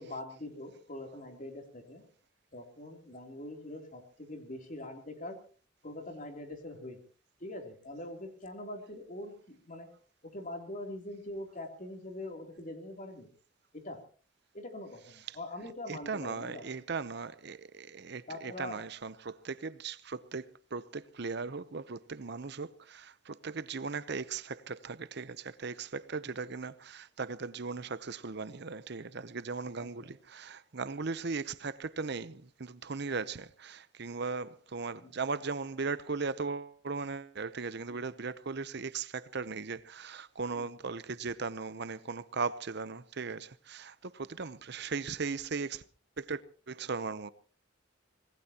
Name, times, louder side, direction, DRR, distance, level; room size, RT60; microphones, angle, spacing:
voice 1, 0.0-2.0 2.5-5.4 5.8-7.0 7.4-9.9 10.2-13.3 13.7-14.0 14.5-16.6 18.3-18.8 29.8-29.9 35.0-35.1 37.9-38.0 40.5-40.7, left 1 dB, 40° left, 3.2 m, -43 dB
voice 2, 15.9-45.8 46.2-46.4 46.7-47.3, right 4 dB, 60° right, 0.8 m, -38 dB
25.0 x 19.0 x 2.9 m
head